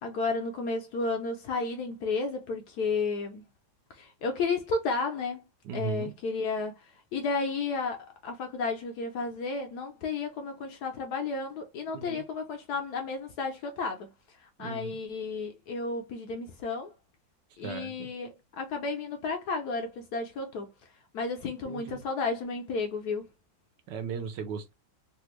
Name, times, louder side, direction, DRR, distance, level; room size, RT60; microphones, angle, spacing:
voice 1, 0.0-3.4 3.9-5.4 5.7-16.9 17.6-20.7 21.1-23.3, left 4 dB, 70° left, 1.0 m, -32 dB
voice 2, 5.6-6.1 11.9-12.2 14.6-15.0 17.6-18.1 21.6-22.0 23.9-24.7, right 6 dB, 75° right, 1.2 m, -37 dB
3.3 x 2.4 x 2.9 m
omnidirectional pair, 2.1 m